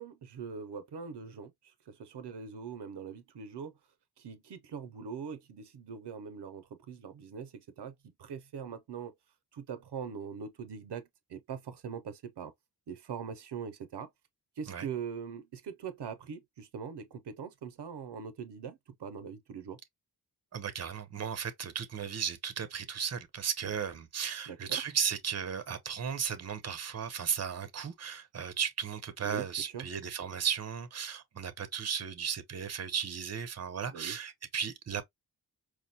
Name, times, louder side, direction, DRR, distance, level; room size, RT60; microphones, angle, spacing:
voice 1, 0.0-1.5 1.9-3.7 4.2-7.9 8.2-9.1 9.5-12.5 12.9-14.1 14.6-19.8 24.5-24.8 29.2-29.4 29.7-29.9 33.9-34.2, right 6 dB, 80° right, 0.7 m, -42 dB
voice 2, 20.5-35.0, right 7 dB, 40° right, 0.7 m, -35 dB
4.7 x 2.1 x 2.7 m
wide cardioid pair, 80°, 40 cm